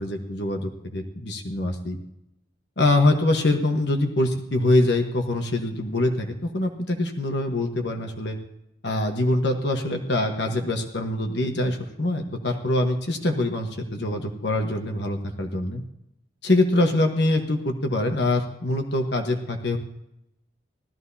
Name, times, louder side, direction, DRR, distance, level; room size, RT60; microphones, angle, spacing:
voice 1, 0.0-2.0 2.8-8.4 8.8-15.8 16.4-19.8, left 2 dB, 65° left, 3 dB, 1.3 m, -24 dB
18.5 x 13.5 x 2.8 m, 0.83 s
head